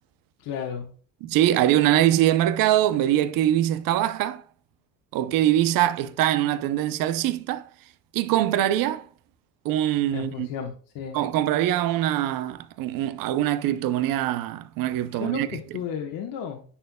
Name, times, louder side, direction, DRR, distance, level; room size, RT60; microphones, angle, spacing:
voice 1, 0.4-0.9 10.1-11.2 15.1-16.6, left 7 dB, 65° left, 1.3 m, -33 dB
voice 2, 1.2-4.4 5.1-7.7 8.1-9.1 9.6-10.5 11.1-15.5, right 12 dB, 65° right, 0.7 m, -23 dB
10.0 x 4.3 x 2.2 m
cardioid pair, 135°, 36 cm